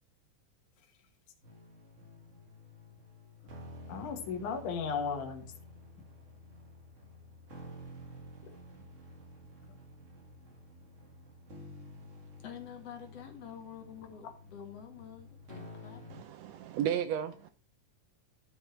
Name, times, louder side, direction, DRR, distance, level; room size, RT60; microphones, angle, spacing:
sound 1, 1.4-16.2, left 1 dB, 40° right, 1.2 m, -51 dB
voice 1, 3.9-5.5 8.4-8.8 14.2-14.3, left 6 dB, 85° left, 2.8 m, -36 dB
voice 2, 12.4-16.0, left 8 dB, 60° left, 2.6 m, -48 dB
voice 3, 16.1-17.5, right 9 dB, 75° right, 1.6 m, -34 dB
12.0 x 5.3 x 4.3 m
omnidirectional pair, 3.4 m